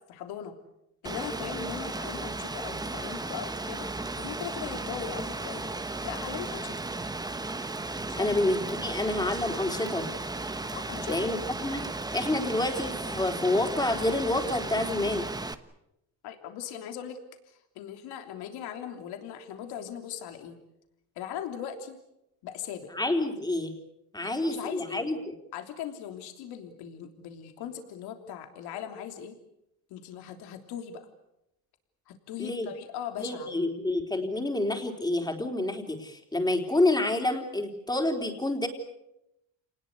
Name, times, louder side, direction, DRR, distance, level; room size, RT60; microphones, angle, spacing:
voice 1, 0.1-0.5 1.0-3.9 4.2-6.8 8.1-8.4 10.7-11.4 16.2-17.2 17.5-20.6 21.1-22.0 22.4-22.9 24.2-25.1 25.5-29.4 29.9-31.0 32.1-33.5, left 9 dB, 80° left, 6 dB, 3.3 m, -39 dB
Rain, 1.0-15.5, right 2 dB, 10° right, 1.1 m, -35 dB
voice 2, 8.1-10.1 11.1-11.4 11.6-11.8 12.1-15.3 22.9-23.7 24.1-25.4 32.4-32.7 33.2-38.7, left 2 dB, 10° left, 4 dB, 3.8 m, -28 dB
28.0 x 20.0 x 8.4 m, 0.86 s
cardioid pair, 125°, 38 cm